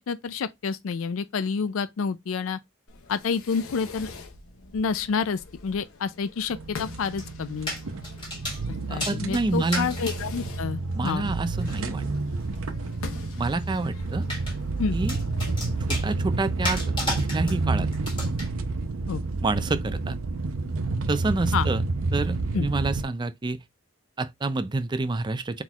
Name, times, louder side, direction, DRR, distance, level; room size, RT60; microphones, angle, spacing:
voice 1, 0.0-2.6 3.1-4.1 4.7-7.7 8.7-11.3 14.8-15.0 19.1-19.2 21.5-21.7 22.5-22.7, left 5 dB, 70° left, 0.4 m, -29 dB
Fireworks, 2.9-15.9, left 4 dB, 90° left, 0.9 m, -45 dB
sound 1, 6.5-23.0, right 3 dB, 85° right, 0.7 m, -29 dB
sound 2, 7.2-7.3 7.7-8.6 9.0-10.2 11.6-11.8 14.2-14.6 15.1-16.1 16.6-17.6 17.9-18.5, left 1 dB, 25° left, 1.7 m, -32 dB
voice 2, 8.9-9.9 11.0-12.0 13.4-14.2 14.9-15.2 15.9-16.8 17.3-17.9 19.4-20.2 21.1-21.8 22.1-23.6 24.2-25.6, right 3 dB, 20° right, 0.4 m, -28 dB
4.4 x 3.9 x 2.3 m
head